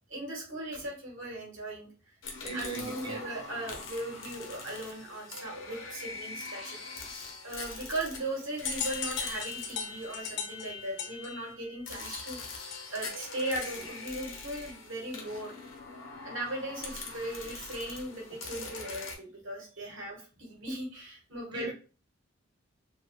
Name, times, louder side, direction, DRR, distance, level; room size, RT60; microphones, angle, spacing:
voice 1, 0.1-1.9 2.5-6.8 7.4-12.4 12.9-15.5 16.2-21.7, right 1 dB, 85° right, 1.3 m, -38 dB
sound 1, 2.2-11.1 11.9-19.1, left 4 dB, 85° left, 0.7 m, -43 dB
voice 2, 2.4-3.2 21.5-21.7, right 2 dB, 20° right, 0.6 m, -38 dB
sound 2, 8.7-13.2, left 7 dB, 55° left, 0.4 m, -39 dB
2.6 x 2.2 x 3.1 m
head